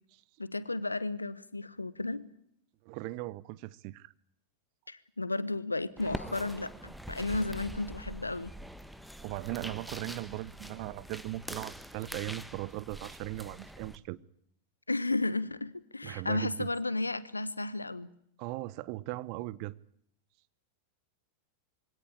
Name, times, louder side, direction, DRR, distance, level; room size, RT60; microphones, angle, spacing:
voice 1, 0.4-2.2 4.9-8.5 14.9-18.1, left 2 dB, 85° left, 18 dB, 1.1 m, -33 dB
voice 2, 2.8-4.1 9.2-14.2 16.0-16.7 18.4-19.8, right 18 dB, 45° right, 20 dB, 0.9 m, -38 dB
sound 1, 6.0-14.0, equal, ahead, 1.4 m, -44 dB
23.5 x 17.5 x 9.9 m, 0.69 s
figure-of-eight pair, 90°, 0 cm